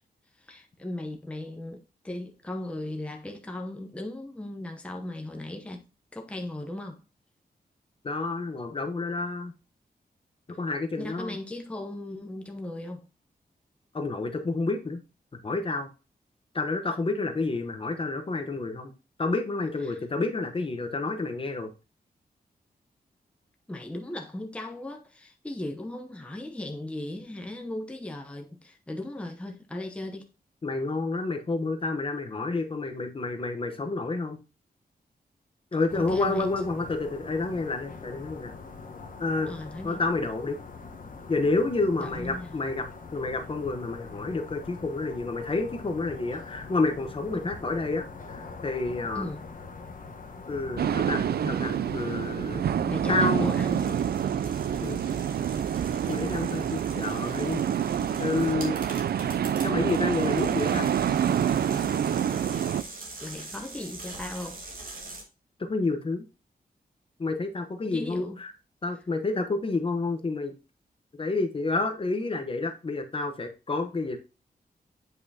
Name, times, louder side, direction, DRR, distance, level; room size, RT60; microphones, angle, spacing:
voice 1, 0.4-5.8 6.1-7.0 11.0-13.1 19.8-20.0 23.7-30.3 35.9-36.5 39.5-40.0 42.0-42.5 47.3-47.5 49.1-49.5 52.9-54.1 63.2-64.6 67.8-68.4, left 1 dB, 5° left, 0.8 m, -37 dB
voice 2, 8.0-9.5 10.5-11.4 13.9-15.0 15.4-15.9 16.5-18.9 19.2-21.7 30.6-34.4 35.7-38.5 39.2-39.5 39.8-40.6 41.3-49.3 50.5-52.6 53.1-53.5 54.8-55.0 56.1-57.6 58.2-58.8 59.6-60.9 65.6-66.2 67.2-68.5 68.8-70.5 71.2-74.2, left 3 dB, 35° left, 0.9 m, -29 dB
sound 1, 35.9-53.6, left 4 dB, 55° left, 1.2 m, -43 dB
sound 2, 50.8-62.8, right 9 dB, 75° right, 0.4 m, -27 dB
sound 3, 53.2-65.2, right 2 dB, 60° right, 2.3 m, -44 dB
8.5 x 5.4 x 2.8 m
wide cardioid pair, 170°, 16 cm